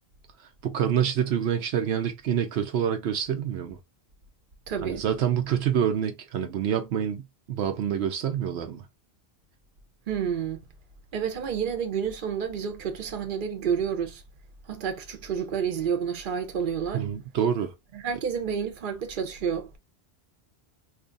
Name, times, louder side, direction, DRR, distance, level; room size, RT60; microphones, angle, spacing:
voice 1, 0.6-3.8 4.8-8.9 16.9-17.7, right 9 dB, 85° right, 0.8 m, -27 dB
voice 2, 4.7-5.0 10.1-10.7 11.1-14.2 14.7-17.1 17.9-19.8, right 7 dB, 55° right, 0.9 m, -29 dB
2.8 x 2.4 x 3.8 m
omnidirectional pair, 1.1 m